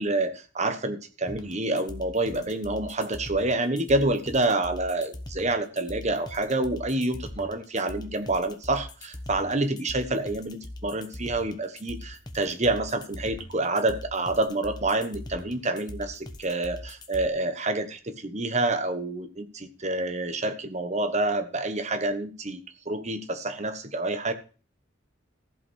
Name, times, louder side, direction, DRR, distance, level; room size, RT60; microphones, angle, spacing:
voice 1, 0.0-22.6 22.8-24.3, right 2 dB, 35° right, 8 dB, 1.2 m, -28 dB
sound 1, 1.3-17.3, left 1 dB, 20° left, 1.1 m, -41 dB
15.0 x 5.4 x 6.3 m, 0.36 s
head